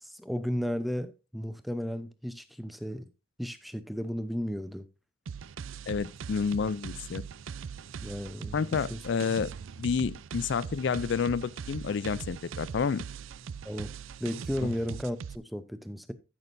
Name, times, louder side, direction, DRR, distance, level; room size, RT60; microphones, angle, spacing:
voice 1, 0.0-3.1 3.4-4.9 8.0-9.0 13.6-13.9 14.2-16.1, equal, ahead, 0.6 m, -34 dB
sound 1, 5.3-15.4, right 6 dB, 75° right, 0.4 m, -41 dB
voice 2, 5.9-7.2 8.5-9.5 9.8-13.1 14.6-14.7, left 5 dB, 60° left, 0.4 m, -29 dB
14.5 x 6.2 x 2.6 m
head